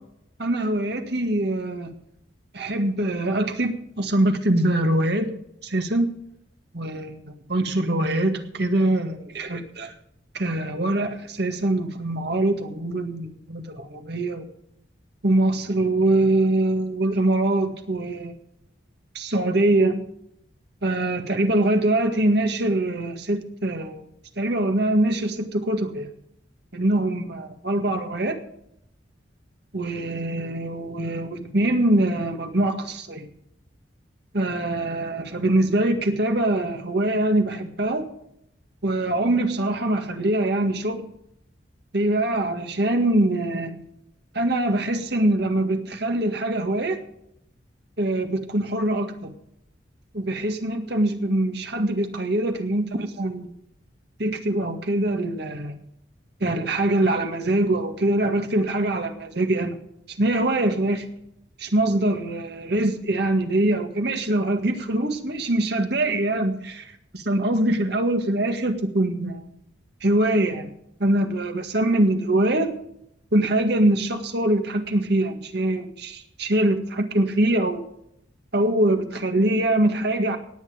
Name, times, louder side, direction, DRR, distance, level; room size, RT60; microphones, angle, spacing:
voice 1, 0.4-1.9 2.5-6.1 6.7-9.9 10.3-14.5 15.2-18.3 19.1-20.0 20.8-24.1 24.4-26.1 26.7-28.4 29.7-33.3 34.3-38.1 38.8-41.1 41.9-43.8 44.3-47.0 48.0-49.3 50.1-53.5 54.2-55.8 56.4-59.8 60.2-61.1 61.6-69.5 70.0-70.7 71.0-72.7 73.3-77.8 78.5-80.4, right 1 dB, 60° right, 6 dB, 1.9 m, -23 dB
18.0 x 9.3 x 5.1 m, 0.74 s
head